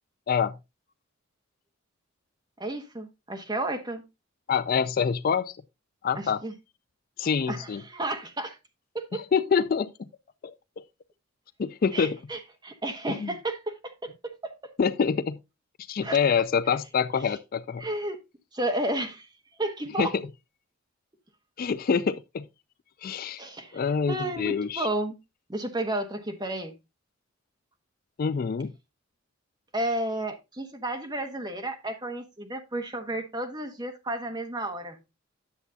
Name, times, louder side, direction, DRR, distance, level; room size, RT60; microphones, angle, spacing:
voice 1, 2.6-4.0 6.1-6.5 7.5-8.6 8.9-9.2 11.9-14.7 16.0-16.2 17.8-18.2 18.5-19.3 19.6-20.1 23.4-25.2 25.5-26.8 29.7-35.0, right 1 dB, 20° right, 1.2 m, -32 dB
voice 2, 4.5-5.5 6.0-6.4 7.2-7.8 9.1-10.1 10.4-10.5 11.6-12.2 13.1-13.3 14.8-15.4 15.9-17.8 20.0-20.1 21.6-22.5 23.0-23.4 23.7-24.9 28.2-28.7, left 6 dB, 45° left, 0.3 m, -26 dB
10.0 x 7.1 x 2.7 m
head